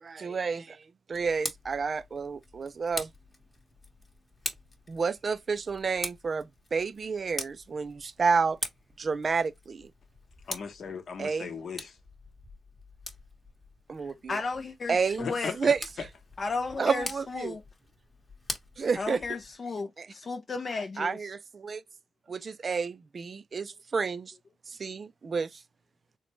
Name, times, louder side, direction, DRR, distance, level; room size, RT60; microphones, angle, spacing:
voice 1, 0.1-0.8 1.1-3.1 4.9-8.6 9.0-9.9 11.2-11.5 13.9-14.4 14.9-15.3 15.6-15.8 16.8-17.6 18.8-19.2 20.0-20.1 21.0-21.8 22.3-24.3 24.7-25.5, right 5 dB, 40° right, 0.3 m, -30 dB
Tick, 1.1-19.6, left 2 dB, 20° left, 0.9 m, -43 dB
voice 2, 10.5-12.0 15.2-15.7, left 5 dB, 55° left, 0.8 m, -37 dB
voice 3, 14.3-15.6 16.4-17.6 19.0-21.2, left 4 dB, 40° left, 0.4 m, -34 dB
3.8 x 2.1 x 3.0 m
cardioid pair, 120°, 0 cm